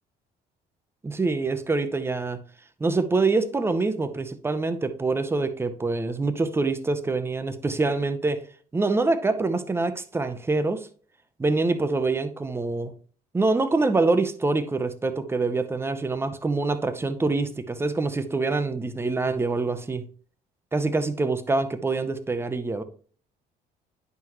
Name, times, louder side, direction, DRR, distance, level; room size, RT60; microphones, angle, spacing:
voice 1, 1.0-2.4 2.8-8.4 8.7-10.9 11.4-12.9 13.3-20.0 20.7-22.8, right 3 dB, 15° right, 11 dB, 0.7 m, -25 dB
9.1 x 5.8 x 3.0 m, 0.43 s
cardioid pair, 110°, 17 cm